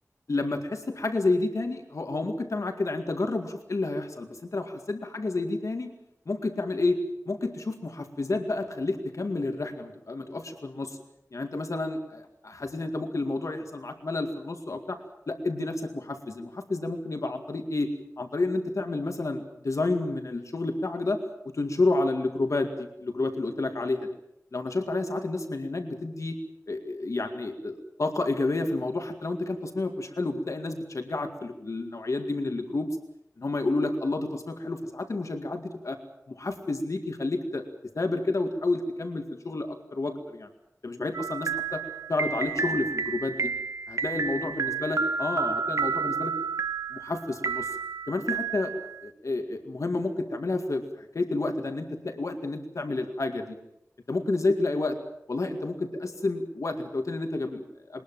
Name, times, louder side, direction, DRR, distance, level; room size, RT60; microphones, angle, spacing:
voice 1, 0.3-5.9 6.3-7.0 7.3-11.0 11.3-15.0 15.3-17.9 18.2-21.2 21.5-22.7 23.0-24.1 24.5-26.4 26.7-32.9 33.4-36.0 36.3-37.6 37.9-40.5 40.8-41.8 42.1-43.5 43.9-46.3 46.9-47.7 48.1-48.7 49.0-53.6 54.1-55.0 55.3-58.0, left 2 dB, 70° left, 6 dB, 2.1 m, -30 dB
sound 1, 41.1-49.1, right 5 dB, 70° right, 1.0 m, -31 dB
22.0 x 19.5 x 7.4 m, 0.79 s
wide cardioid pair, 75°, 6 cm